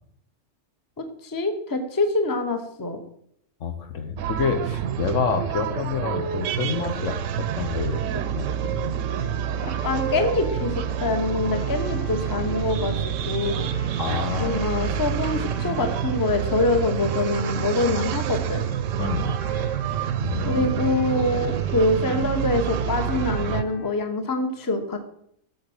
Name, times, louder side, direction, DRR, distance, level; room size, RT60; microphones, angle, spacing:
voice 1, 1.0-3.0 9.6-13.7 14.4-18.7 20.5-25.1, left 2 dB, 20° left, 6 dB, 0.8 m, -25 dB
voice 2, 3.6-8.0 8.4-8.9 14.0-15.0 19.0-19.4 20.2-20.8, left 6 dB, 70° left, 6 dB, 1.4 m, -28 dB
sound 1, 4.2-23.6, right 9 dB, 75° right, 0.9 m, -27 dB
sound 2, 9.1-23.9, left 1 dB, 40° left, 1.9 m, -44 dB
8.2 x 4.2 x 7.0 m, 0.69 s
omnidirectional pair, 1.3 m